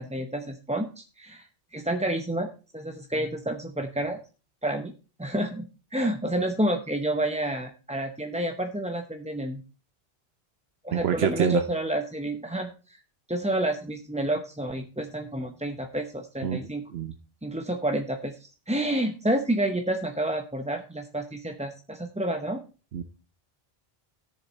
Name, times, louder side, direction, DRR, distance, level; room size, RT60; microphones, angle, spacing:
voice 1, 0.0-2.5 2.7-4.2 4.6-4.9 5.2-9.6 10.8-13.0 13.3-16.8 17.4-22.6, right 1 dB, 10° right, 5 dB, 0.6 m, -29 dB
voice 2, 10.9-11.6 16.4-17.1 22.9-23.0, right 9 dB, 85° right, 8 dB, 1.0 m, -27 dB
13.5 x 7.1 x 4.1 m, 0.35 s
omnidirectional pair, 1.0 m